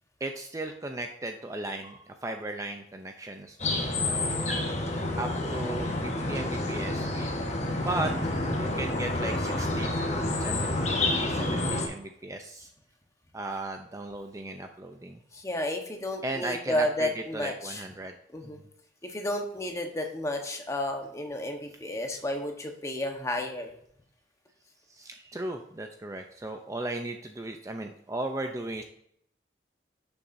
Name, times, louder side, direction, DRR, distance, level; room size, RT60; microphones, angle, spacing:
voice 1, 0.2-4.7 5.2-7.3 7.8-12.7 13.3-15.2 16.2-18.1 18.4-18.5 24.9-28.8, right 2 dB, 20° right, 5 dB, 0.5 m, -36 dB
sound 1, 3.6-11.9, left 2 dB, 40° left, 1.3 m, -29 dB
voice 2, 15.3-17.8 18.3-18.6 19.0-23.7, left 1 dB, 15° left, 3 dB, 1.1 m, -32 dB
11.0 x 6.9 x 2.7 m, 0.69 s
head